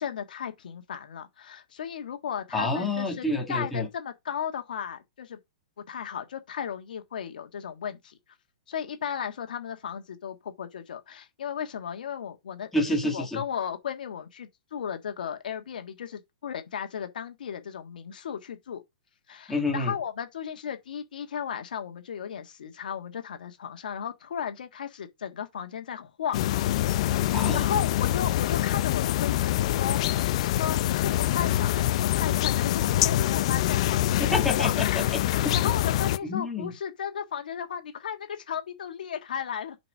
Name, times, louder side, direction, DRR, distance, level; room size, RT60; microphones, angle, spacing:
voice 1, 0.0-5.4 5.9-8.2 8.7-12.7 13.0-18.8 19.3-26.4 27.0-34.7 35.5-39.8, left 8 dB, 70° left, 1.5 m, -35 dB
voice 2, 2.5-3.9 12.7-13.4 19.5-19.9 27.3-27.7 34.2-35.6 36.2-36.7, left 2 dB, 5° left, 2.0 m, -28 dB
sound 1, 26.3-36.2, left 13 dB, 40° left, 0.4 m, -25 dB
6.9 x 4.3 x 5.4 m
hypercardioid pair, 160°, 5 cm